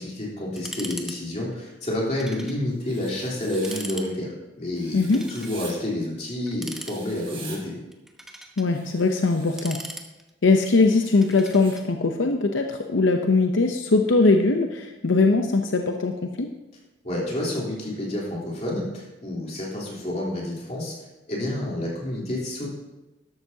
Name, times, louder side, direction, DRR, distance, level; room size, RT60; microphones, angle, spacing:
voice 1, 0.0-4.3 4.6-7.7 17.0-20.9 21.3-22.7, left 1 dB, 35° left, -5 dB, 3.4 m, -29 dB
sound 1, 0.6-1.2 1.4-1.5 2.2-2.6 3.0-3.1 3.5-4.1 5.0-5.6 6.5-7.3 7.9-8.7 9.3-10.5 11.2-11.9, right 1 dB, ahead, 0.9 m, -39 dB
Writing, 2.8-3.8 4.8-5.7 6.7-7.6 8.7-9.7 10.7-11.8, right 4 dB, 30° right, 1.9 m, -44 dB
voice 2, 4.9-5.2 8.6-9.8 10.4-16.5, left 3 dB, 80° left, 4 dB, 0.7 m, -21 dB
13.0 x 12.0 x 2.8 m, 1.1 s
head